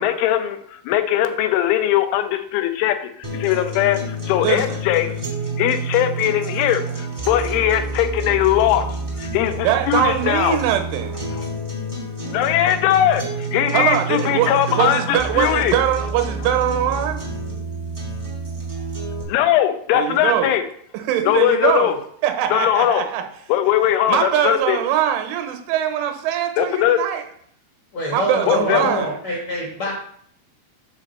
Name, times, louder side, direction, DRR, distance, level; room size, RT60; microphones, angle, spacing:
voice 1, 0.0-5.2 5.6-8.9 9.2-10.6 12.3-15.8 19.3-20.6 21.3-22.0 22.5-23.0 23.5-24.8 26.6-27.0 28.5-28.9, left 11 dB, 90° left, 9 dB, 3.1 m, -20 dB
sound 1, 3.2-19.2, right 2 dB, 35° right, 0.5 m, -29 dB
voice 2, 4.4-4.8 9.6-11.2 13.7-17.2 19.9-20.5 20.9-22.0 22.2-23.3 24.1-27.2 28.1-29.2, right 10 dB, 90° right, 6 dB, 3.3 m, -22 dB
voice 3, 27.9-29.9, equal, 75° left, -3 dB, 1.6 m, -25 dB
7.5 x 4.1 x 6.5 m, 0.64 s
omnidirectional pair, 5.4 m